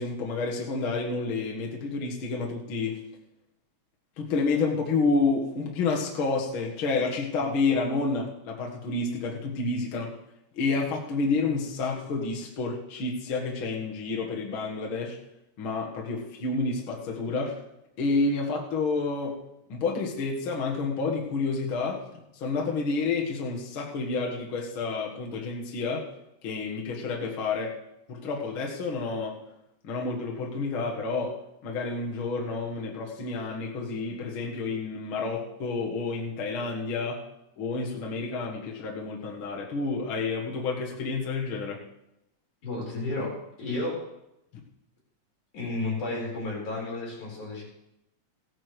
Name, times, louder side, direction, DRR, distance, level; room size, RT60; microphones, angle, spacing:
voice 1, 0.0-3.0 4.2-10.1 10.5-15.2 15.6-17.6 18.0-19.4 19.7-22.0 22.3-26.1 26.4-27.8 28.1-29.4 29.8-31.4 31.6-37.2 37.6-41.8, left 3 dB, 50° left, -1 dB, 2.2 m, -29 dB
voice 2, 42.6-44.0 45.5-47.6, left 2 dB, 80° left, -3 dB, 5.5 m, -32 dB
16.0 x 9.2 x 5.0 m, 0.86 s
omnidirectional pair, 3.3 m